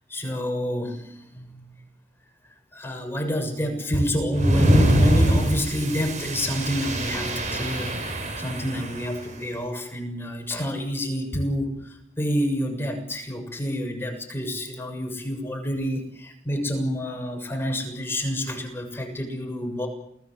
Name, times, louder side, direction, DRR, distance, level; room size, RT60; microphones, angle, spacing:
voice 1, 0.1-1.7 2.7-19.9, equal, 15° left, 4 dB, 6.9 m, -28 dB
sound 1, 4.3-9.2, equal, 40° right, 6.9 m, -23 dB
29.0 x 19.5 x 7.9 m, 0.75 s
head